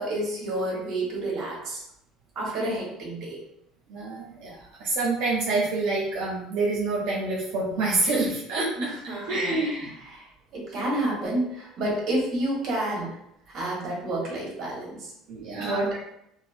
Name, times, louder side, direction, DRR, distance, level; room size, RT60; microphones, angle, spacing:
voice 1, 0.0-1.8 2.3-3.4 8.8-13.2 13.5-15.1 15.6-16.1, right 1 dB, 50° right, -3 dB, 1.4 m, -30 dB
voice 2, 3.9-8.9 9.3-9.9 15.3-15.9, right 3 dB, 75° right, -4 dB, 0.6 m, -27 dB
4.2 x 2.1 x 2.6 m, 0.79 s
cardioid pair, 130°, 0 cm